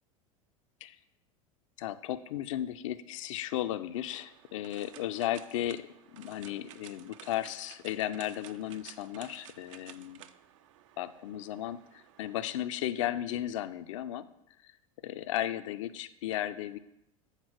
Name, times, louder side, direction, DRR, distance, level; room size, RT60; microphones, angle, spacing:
voice 1, 1.8-10.2 11.0-14.3 14.6-14.7 15.0-16.8, left 12 dB, 60° left, 12 dB, 0.4 m, -35 dB
sound 1, 3.9-12.7, right 11 dB, 60° right, 0.4 m, -54 dB
8.0 x 3.9 x 6.0 m, 0.83 s
figure-of-eight pair, 80°, 18 cm